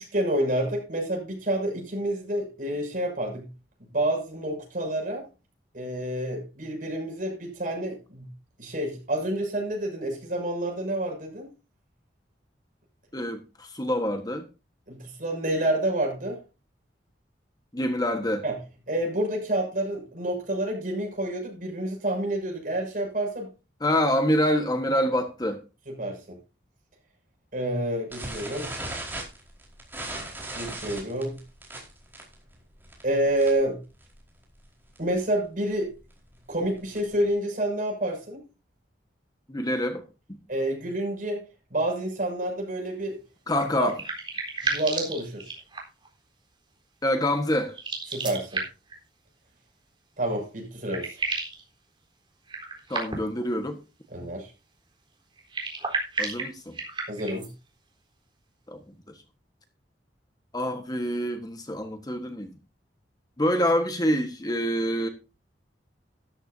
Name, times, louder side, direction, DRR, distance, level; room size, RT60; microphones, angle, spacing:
voice 1, 0.0-3.5 3.9-5.2 5.7-8.3 8.6-11.5 14.9-16.4 18.4-18.5 18.9-23.5 25.9-26.4 27.5-28.7 30.5-31.4 33.0-33.8 35.0-35.9 36.5-38.4 40.5-41.4 41.7-43.2 43.8-43.9 44.6-45.5 48.1-48.6 50.2-51.2 54.1-54.5 57.1-57.5, right 1 dB, 50° right, 6.7 m, -28 dB
voice 2, 13.1-14.5 17.7-18.4 23.8-25.6 39.5-40.0 43.5-44.0 47.0-47.8 52.9-53.8 56.2-56.8 58.7-58.8 60.5-62.6 63.4-65.1, equal, 20° left, 1.4 m, -26 dB
sound 1, 28.1-33.7 34.0-34.3 34.6-34.7 35.0-35.2 35.7-37.3, right 2 dB, 10° right, 4.7 m, -38 dB
sound 2, 43.5-46.1 47.7-49.0 50.3-50.4 50.6-51.6 52.5-53.4 55.4-57.5, right 3 dB, 30° right, 4.0 m, -32 dB
13.5 x 12.5 x 2.7 m
head